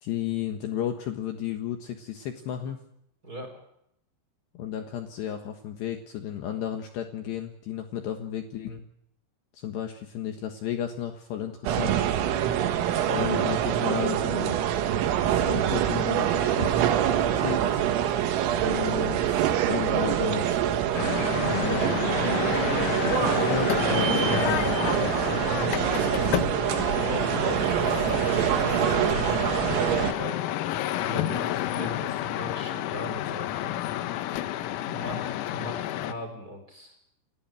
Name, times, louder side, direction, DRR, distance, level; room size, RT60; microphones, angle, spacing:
voice 1, 0.0-2.8 4.5-8.8 9.5-12.0 12.9-14.6 15.3-16.9 17.3-17.8 18.5-20.7 21.5-22.0 23.5-24.8, left 9 dB, 65° left, 5 dB, 3.1 m, -33 dB
voice 2, 3.2-3.6 12.4-13.4 25.4-26.4 27.0-30.4 31.0-33.9 34.8-37.0, equal, 20° right, 4 dB, 4.3 m, -39 dB
sound 1, 11.7-30.1, right 10 dB, 80° right, 4.2 m, -25 dB
sound 2, 20.9-36.1, left 13 dB, 85° left, 3.9 m, -30 dB
29.5 x 14.5 x 9.1 m, 0.76 s
omnidirectional pair, 5.9 m